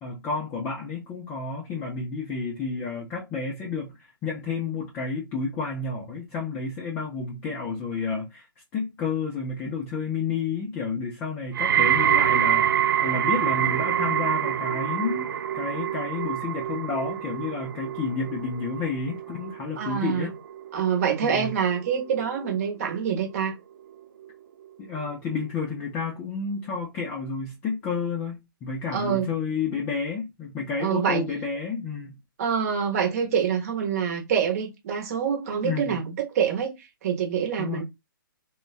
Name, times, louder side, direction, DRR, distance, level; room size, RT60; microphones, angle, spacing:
voice 1, 0.0-8.5 8.7-20.3 21.2-21.6 24.8-32.2 35.6-36.0 37.6-37.8, left 4 dB, 15° left, 0.4 m, -31 dB
sound 1, 11.5-22.7 23.0-23.5 24.2-24.3, right 10 dB, 65° right, 0.4 m, -26 dB
voice 2, 19.8-20.3 20.7-23.6 28.9-29.3 30.8-31.2 32.4-36.7 37.0-37.8, right 7 dB, 40° right, 0.9 m, -26 dB
3.3 x 2.1 x 2.4 m
hypercardioid pair, 155°, 12 cm